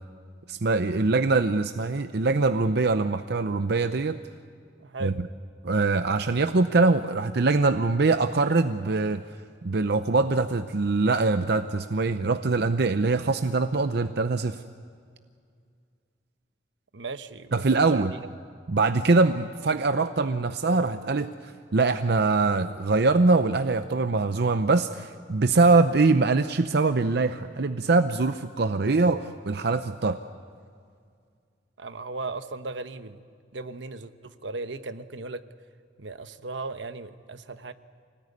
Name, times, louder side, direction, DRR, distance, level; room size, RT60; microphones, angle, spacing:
voice 1, 0.5-4.2 5.0-5.1 5.6-9.2 9.6-14.6 17.5-18.1 18.7-30.2, right 3 dB, 65° right, 9 dB, 0.7 m, -23 dB
voice 2, 4.8-5.2 16.9-17.5 17.9-18.3 31.8-33.2 33.5-35.4 36.0-37.7, right 3 dB, 80° right, 10 dB, 1.0 m, -36 dB
25.5 x 19.0 x 9.7 m, 2.2 s
head